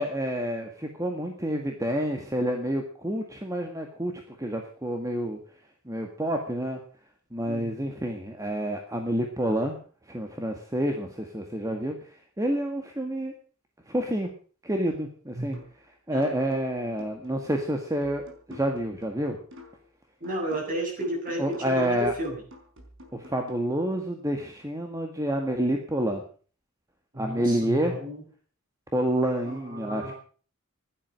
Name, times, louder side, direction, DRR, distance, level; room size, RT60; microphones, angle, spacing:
voice 1, 0.0-5.4 5.9-6.8 7.3-9.8 10.1-13.3 13.9-14.3 14.6-15.6 16.1-19.4 21.4-22.1 23.1-26.2 27.2-27.9 28.9-30.1, right 1 dB, 15° right, 3 dB, 1.8 m, -28 dB
sound 1, 15.5-15.8 16.2-19.9 20.2-23.5, left 2 dB, 65° right, 4.7 m, -50 dB
voice 2, 20.2-22.4 27.1-28.2 29.4-30.1, right 1 dB, 40° right, 0 dB, 7.8 m, -33 dB
16.0 x 11.5 x 6.5 m, 0.42 s
head